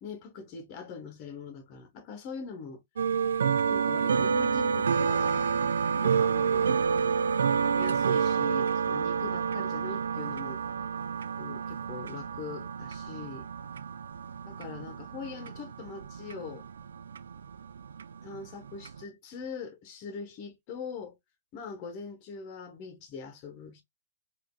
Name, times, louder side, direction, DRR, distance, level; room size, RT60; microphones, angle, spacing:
voice 1, 0.0-2.8 3.7-5.5 6.0-6.7 7.6-10.6 11.4-13.5 14.5-16.7 18.2-21.1 21.5-23.8, left 5 dB, 40° left, 1.2 m, -42 dB
sound 1, 3.0-19.0, right 6 dB, 80° right, 0.3 m, -29 dB
4.9 x 2.6 x 2.3 m
hypercardioid pair, 135°, 0 cm